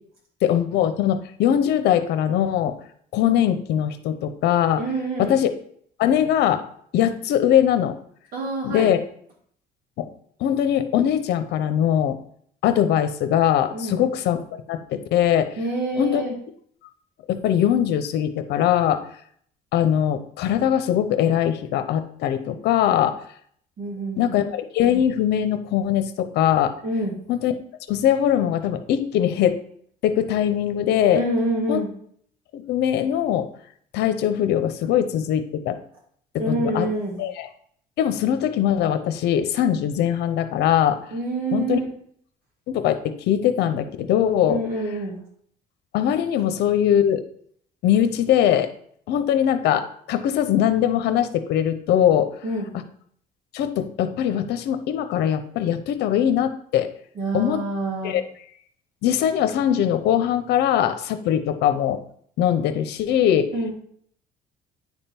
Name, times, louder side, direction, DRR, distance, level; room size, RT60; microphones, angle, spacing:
voice 1, 0.4-2.8 3.1-4.8 5.2-5.5 6.0-6.6 6.9-7.9 8.6-9.0 10.0-10.1 10.4-12.2 12.6-15.5 16.0-16.2 17.3-19.0 19.7-23.2 24.2-26.7 27.3-27.5 27.9-29.6 30.0-31.2 31.7-31.8 32.5-33.5 33.9-35.8 36.4-36.9 37.2-37.5 38.0-41.0 41.5-41.8 42.7-44.6 45.9-47.2 47.8-48.7 49.1-52.3 53.5-56.9 57.3-57.6 58.0-58.2 59.0-62.0 62.4-63.5, left 10 dB, 80° left, 9 dB, 0.7 m, -21 dB
voice 2, 4.8-5.4 8.3-8.9 13.7-14.0 15.6-16.3 23.8-24.3 26.8-27.1 31.1-31.9 36.4-37.2 41.1-41.9 44.5-45.2 52.4-52.7 57.1-58.2 63.5-63.7, right 1 dB, 60° right, -3 dB, 2.9 m, -26 dB
9.4 x 3.6 x 4.4 m, 0.63 s
cardioid pair, 110°, 17 cm